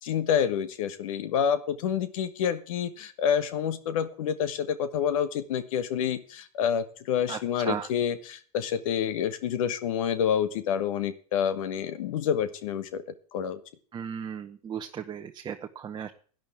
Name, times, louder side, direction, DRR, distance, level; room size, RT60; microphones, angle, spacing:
voice 1, 0.0-13.0 13.3-13.6, left 8 dB, 65° left, 13 dB, 1.2 m, -28 dB
voice 2, 13.9-16.1, right 8 dB, 25° right, 4 dB, 0.9 m, -35 dB
17.0 x 10.5 x 3.5 m, 0.42 s
hypercardioid pair, 100°, 19 cm